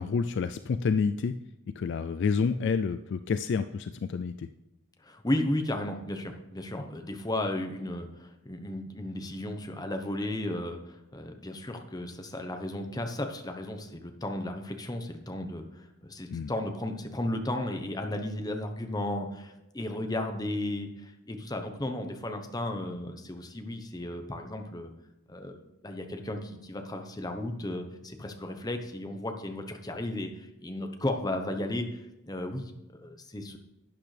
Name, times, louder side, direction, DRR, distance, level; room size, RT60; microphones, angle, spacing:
voice 1, 0.0-1.4 1.8-4.5 16.3-16.5, left 5 dB, 50° left, 10 dB, 0.3 m, -29 dB
voice 2, 5.0-24.9 25.3-33.6, left 1 dB, 15° left, 5 dB, 0.9 m, -34 dB
12.0 x 8.8 x 3.3 m, 0.92 s
head